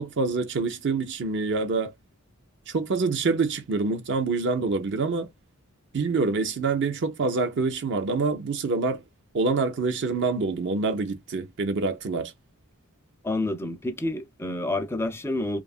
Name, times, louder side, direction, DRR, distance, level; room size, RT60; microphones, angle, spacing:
voice 1, 0.0-1.9 2.7-5.3 5.9-9.0 9.3-12.3, right 4 dB, 55° right, 0.6 m, -26 dB
voice 2, 13.2-15.6, left 2 dB, 10° left, 0.4 m, -28 dB
2.7 x 2.4 x 2.3 m
head